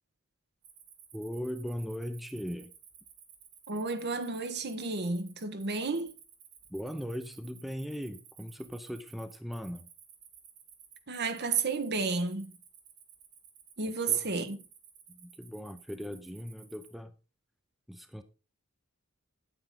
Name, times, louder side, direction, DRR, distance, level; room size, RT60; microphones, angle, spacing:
Cricket, 0.6-17.0, right 8 dB, 85° right, 2.6 m, -56 dB
voice 1, 1.1-2.7 6.7-9.9 13.8-14.2 15.1-17.1 17.9-18.2, equal, ahead, 0.7 m, -39 dB
voice 2, 3.7-6.1 11.1-12.5 13.8-14.6, right 4 dB, 55° right, 1.2 m, -31 dB
9.1 x 8.9 x 3.8 m
head